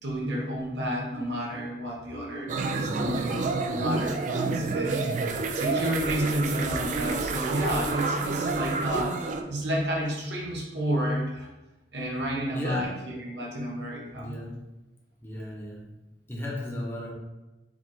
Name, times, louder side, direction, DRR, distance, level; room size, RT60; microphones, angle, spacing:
voice 1, 0.0-5.1 5.5-11.5 11.9-14.4, equal, 70° right, -2 dB, 0.9 m, -31 dB
sound 1, 2.5-9.4, right 3 dB, 45° right, 0.3 m, -29 dB
voice 2, 12.5-12.9 14.2-14.6 15.2-15.8 16.3-17.1, left 1 dB, 10° left, -3 dB, 0.7 m, -34 dB
4.6 x 2.4 x 3.8 m, 1.0 s
head